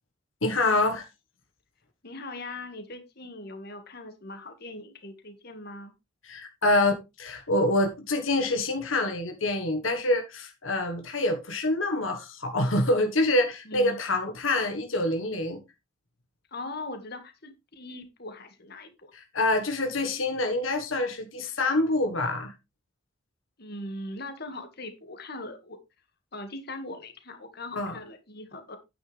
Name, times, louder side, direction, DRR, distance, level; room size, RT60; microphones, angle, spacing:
voice 1, 0.4-1.1 6.2-15.6 19.1-22.5 27.7-28.0, left 2 dB, 80° left, 1.6 m, -26 dB
voice 2, 2.0-5.9 13.7-14.0 16.5-19.1 23.6-25.8 26.3-28.8, left 2 dB, 55° left, 2.0 m, -40 dB
9.6 x 9.3 x 3.4 m
head